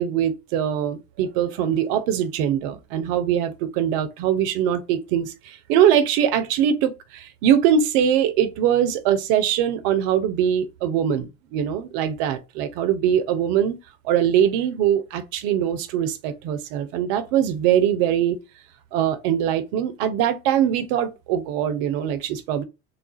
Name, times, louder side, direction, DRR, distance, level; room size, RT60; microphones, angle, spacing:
voice 1, 0.0-13.8 14.0-18.4 18.9-22.6, right 9 dB, 85° right, 0.7 m, -22 dB
3.5 x 2.3 x 2.4 m
supercardioid pair, 70°, 38 cm